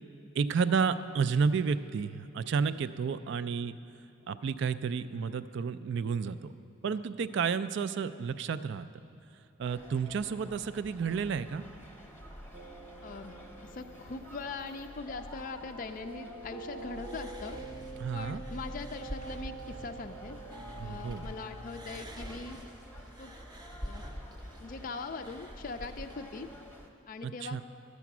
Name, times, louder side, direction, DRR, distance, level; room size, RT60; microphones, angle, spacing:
voice 1, 0.3-3.8 4.3-6.5 6.8-8.9 9.6-11.6 18.0-18.4 20.8-21.3 27.2-27.6, right 5 dB, 55° right, 13 dB, 0.3 m, -31 dB
sound 1, 9.6-26.9, equal, 10° left, 0.9 m, -49 dB
sound 2, 12.5-22.0, right 3 dB, 80° right, 1.0 m, -47 dB
voice 2, 13.0-13.3 13.6-17.6 18.1-20.4 20.8-22.6 23.2-23.3 23.8-24.0 24.6-26.5 27.1-27.6, left 4 dB, 40° left, 7 dB, 0.4 m, -41 dB
sound 3, 17.0-21.3 21.6-26.1, equal, 20° right, 0.6 m, -46 dB
12.0 x 8.3 x 6.0 m, 2.7 s
head